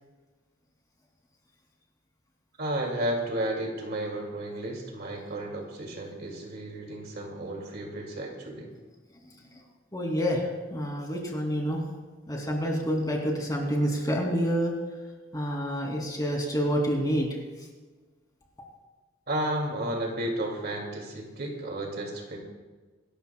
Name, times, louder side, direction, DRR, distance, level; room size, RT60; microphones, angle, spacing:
voice 1, 2.6-8.7 19.3-22.4, right 1 dB, 55° right, 0 dB, 2.6 m, -32 dB
voice 2, 9.1-9.6 9.9-11.8 12.3-14.7 15.3-17.7, equal, 20° left, 0 dB, 2.9 m, -28 dB
26.0 x 13.0 x 2.3 m, 1.3 s
head